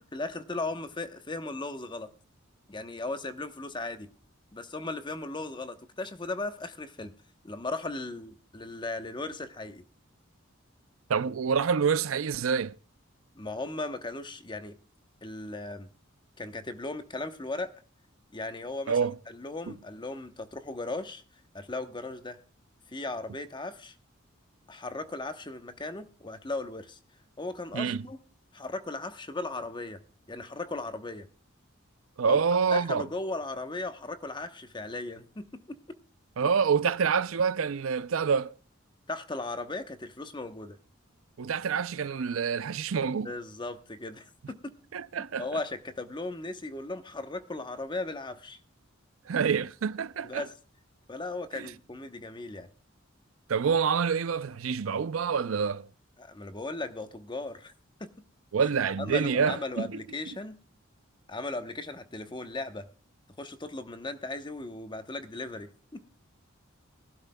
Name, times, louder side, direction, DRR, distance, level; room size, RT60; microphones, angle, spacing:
voice 1, 0.0-2.1 2.7-4.1 4.5-7.1 7.4-9.8 13.4-14.7 15.2-15.9 16.4-17.7 18.3-19.0 19.3-21.2 21.5-22.4 22.9-23.9 24.7-27.0 27.4-28.2 28.5-30.0 30.3-31.3 32.3-32.4 32.7-36.0 39.1-40.8 43.2-44.7 45.4-48.6 50.2-50.5 51.1-52.7 56.2-57.7 58.0-58.1 58.8-60.6 61.3-62.9 63.4-66.0, left 2 dB, 25° left, 0.9 m, -37 dB
voice 2, 11.1-12.8 18.9-19.2 27.7-28.0 32.2-33.0 36.4-38.5 41.4-43.3 44.9-45.5 49.3-50.4 51.5-51.7 53.5-55.9 58.5-60.0, right 6 dB, 85° right, 0.5 m, -27 dB
21.0 x 12.0 x 2.2 m
head